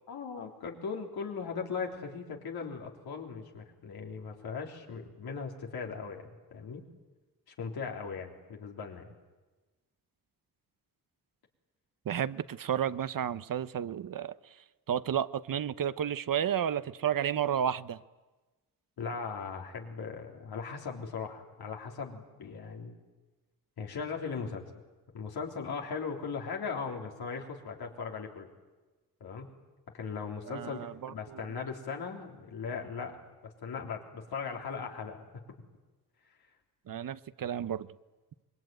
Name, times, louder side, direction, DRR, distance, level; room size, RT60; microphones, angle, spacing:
voice 1, 0.1-6.9 7.5-9.1 19.0-23.0 23.8-24.7 25.1-28.5 29.2-29.5 29.9-33.2 33.6-35.2, left 5 dB, 90° left, 1 dB, 3.6 m, -38 dB
voice 2, 12.0-18.0 30.5-31.4 36.9-37.9, right 9 dB, 65° right, 15 dB, 0.9 m, -32 dB
25.5 x 21.5 x 9.2 m, 1.2 s
cardioid pair, 75°, 37 cm